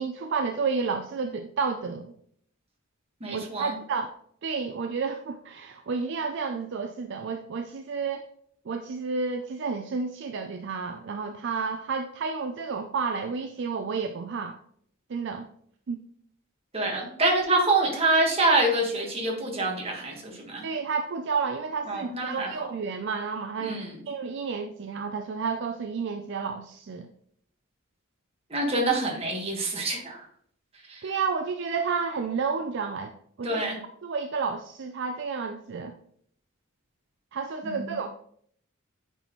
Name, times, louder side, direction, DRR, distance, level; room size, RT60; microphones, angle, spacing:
voice 1, 0.0-2.1 3.3-4.1 4.4-8.3 8.7-14.6 15.1-15.5 15.9-16.0 20.6-23.8 24.1-27.1 31.0-33.1 33.4-33.7 34.0-35.9 37.3-38.1, right 5 dB, 55° right, 6 dB, 0.4 m, -31 dB
voice 2, 3.2-3.7 16.7-20.6 21.9-22.5 23.6-23.9 28.5-30.2 30.9-31.0 33.4-33.8 37.6-38.0, right 2 dB, 30° right, 0 dB, 1.5 m, -26 dB
9.0 x 4.1 x 3.0 m, 0.64 s
head